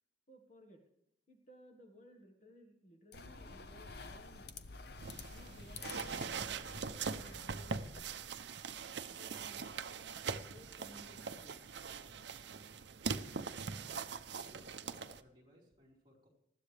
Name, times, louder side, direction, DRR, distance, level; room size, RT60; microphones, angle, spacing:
voice 1, 0.3-0.8 1.3-4.5 5.3-7.8 8.9-9.6 10.2-11.6, equal, 40° left, 3 dB, 1.6 m, -59 dB
sound 1, 3.1-8.5, left 3 dB, 55° left, 0.8 m, -50 dB
sound 2, 5.0-15.2, right 5 dB, 65° right, 0.7 m, -42 dB
voice 2, 13.7-14.0 14.4-16.3, equal, 25° right, -4 dB, 4.4 m, -63 dB
20.0 x 14.0 x 3.4 m, 0.74 s
head